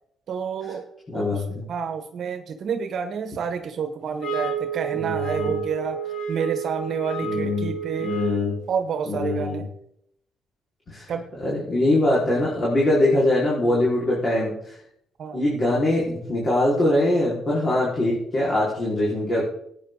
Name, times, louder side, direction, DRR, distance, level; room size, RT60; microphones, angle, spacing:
voice 1, 0.3-0.8 1.1-6.0 6.3-8.2 8.7-9.7 11.1-11.3 15.2-15.4, right 6 dB, 60° right, 8 dB, 1.1 m, -29 dB
voice 2, 1.1-1.6 4.9-5.6 7.2-7.7 8.0-8.6 9.1-9.6 10.9-11.1 11.4-14.7 15.3-19.4, left 1 dB, 40° left, -6 dB, 4.5 m, -22 dB
sound 1, 4.2-8.6, right 7 dB, 75° left, 3.8 m, -30 dB
17.0 x 9.2 x 3.9 m, 0.74 s
cardioid pair, 90°, 0 cm